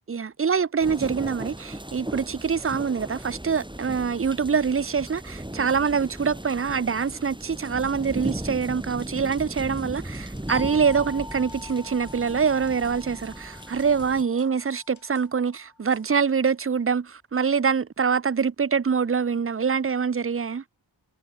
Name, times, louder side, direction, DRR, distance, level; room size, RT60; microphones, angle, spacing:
voice 1, 0.1-20.6, right 6 dB, 30° right, 0.5 m, -25 dB
sound 1, 0.8-14.2, right 1 dB, 10° right, 2.1 m, -37 dB
sound 2, 7.1-8.4 8.6-8.7 9.0-10.7 10.9-11.1 11.3-13.0 13.2-13.4 13.6-15.7 15.9-16.3, left 5 dB, 85° left, 1.8 m, -55 dB
sound 3, 10.5-15.8, left 3 dB, 45° left, 2.3 m, -44 dB
wide cardioid pair, 40°, 46 cm